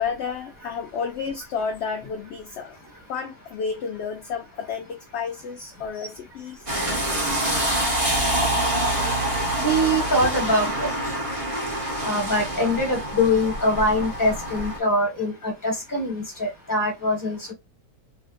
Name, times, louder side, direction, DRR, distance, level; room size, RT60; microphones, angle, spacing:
voice 1, 0.0-2.8 3.1-6.7, left 6 dB, 65° left, 0.7 m, -31 dB
sound 1, 6.7-14.8, right 1 dB, 25° right, 1.1 m, -26 dB
voice 2, 9.5-10.9 12.0-15.3 15.6-17.5, left 1 dB, 15° left, 1.5 m, -23 dB
3.4 x 2.6 x 2.5 m
omnidirectional pair, 1.6 m